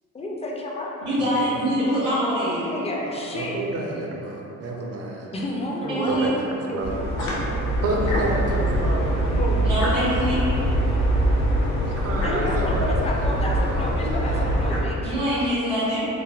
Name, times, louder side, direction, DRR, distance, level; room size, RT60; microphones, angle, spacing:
voice 1, 0.1-1.3 2.6-3.6 5.3-6.3 6.7-6.8 9.3-9.8 12.1-15.1, left 1 dB, 20° left, -2 dB, 0.3 m, -30 dB
voice 2, 1.0-2.7 5.9-6.3 9.6-10.4 15.0-16.1, equal, 80° right, -14 dB, 1.3 m, -24 dB
voice 3, 3.3-5.3 5.8-6.9 7.8-9.1 12.0-14.5, right 2 dB, 55° right, -2 dB, 0.5 m, -30 dB
sound 1, 6.8-14.8, right 1 dB, 85° left, 0.6 m, -23 dB
3.2 x 2.0 x 2.3 m, 2.9 s
cardioid pair, 90°, 30 cm